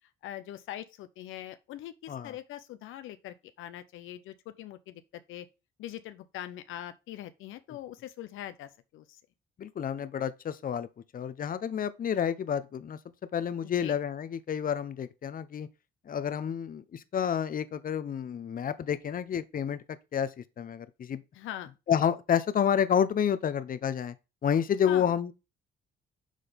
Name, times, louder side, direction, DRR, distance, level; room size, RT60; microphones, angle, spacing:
voice 1, 0.2-5.5 5.8-9.2 13.6-14.0 21.3-21.7 24.8-25.1, left 12 dB, 85° left, 0.6 m, -42 dB
voice 2, 9.6-10.9 11.1-13.0 13.3-15.7 16.1-19.8 20.1-20.3 20.6-21.2 21.9-24.1 24.4-25.3, left 8 dB, 45° left, 0.7 m, -29 dB
6.4 x 3.8 x 5.1 m
cardioid pair, 90°, 20 cm